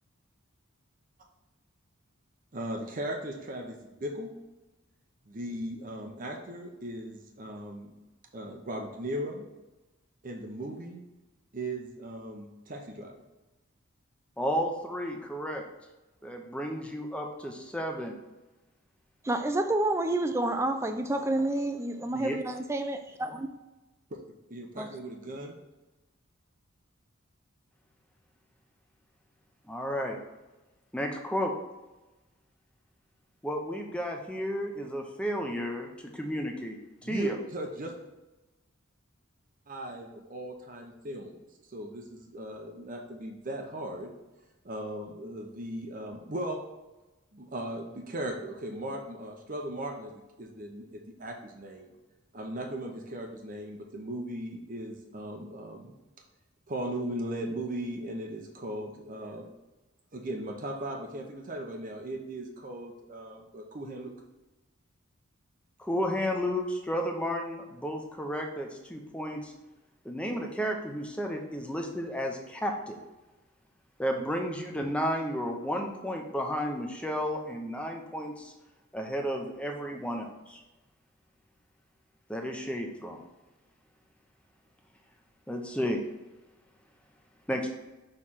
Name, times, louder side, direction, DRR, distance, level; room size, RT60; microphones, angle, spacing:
voice 1, 2.5-4.3 5.3-7.9 8.3-9.5 10.2-11.0 11.5-13.1 24.5-25.6 37.0-37.9 39.7-41.3 41.7-44.1 44.6-46.6 47.3-50.1 50.4-51.9 52.3-55.9 56.7-59.5 60.1-64.1, right 1 dB, 40° right, 2 dB, 0.8 m, -37 dB
voice 2, 14.4-15.6 16.2-18.1 22.1-22.4 29.7-30.2 30.9-31.5 33.4-35.9 36.1-37.4 65.8-69.5 70.0-73.0 74.0-78.5 78.9-80.6 82.3-83.2 85.5-86.0 87.5-87.7, equal, 5° left, 2 dB, 0.8 m, -32 dB
voice 3, 19.2-23.5 24.8-24.9, right 1 dB, 15° right, 6 dB, 0.4 m, -29 dB
6.4 x 3.3 x 5.7 m, 1.1 s
head